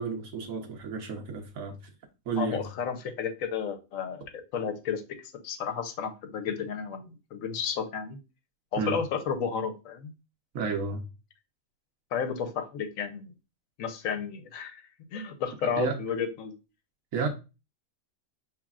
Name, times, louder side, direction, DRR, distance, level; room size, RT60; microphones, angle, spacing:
voice 1, 0.0-1.8 2.3-2.7 8.8-9.0 10.5-11.0 15.6-16.0 17.1-17.3, right 5 dB, 80° right, 1.3 m, -32 dB
voice 2, 2.4-5.0 5.4-8.2 8.7-10.1 12.1-13.3 13.8-14.8 15.1-16.5, left 6 dB, 80° left, 1.1 m, -32 dB
6.0 x 3.2 x 2.4 m
omnidirectional pair, 1.4 m